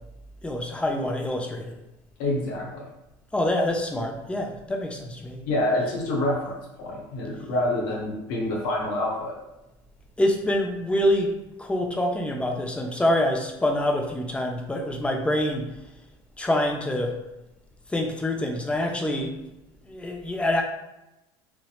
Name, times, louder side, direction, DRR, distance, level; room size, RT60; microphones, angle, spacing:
voice 1, 0.4-1.8 3.3-5.4 10.2-11.3 11.6-15.7 16.4-17.1 17.9-19.3 19.9-20.6, left 1 dB, 10° left, 2 dB, 0.4 m, -26 dB
voice 2, 2.2-2.9 5.5-9.4, left 1 dB, 75° left, -3 dB, 0.8 m, -27 dB
2.7 x 2.1 x 2.2 m, 0.94 s
hypercardioid pair, 85°, 11 cm